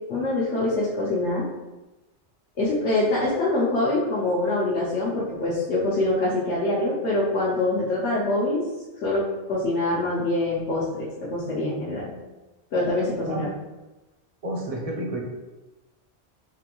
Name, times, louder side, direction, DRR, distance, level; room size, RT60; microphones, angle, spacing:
voice 1, 0.1-1.4 2.6-8.6 9.0-12.1 12.7-13.5, left 2 dB, 75° left, -7 dB, 1.0 m, -24 dB
voice 2, 14.4-15.2, right 1 dB, 40° right, -1 dB, 0.6 m, -30 dB
3.8 x 2.5 x 2.9 m, 1.1 s
omnidirectional pair, 1.2 m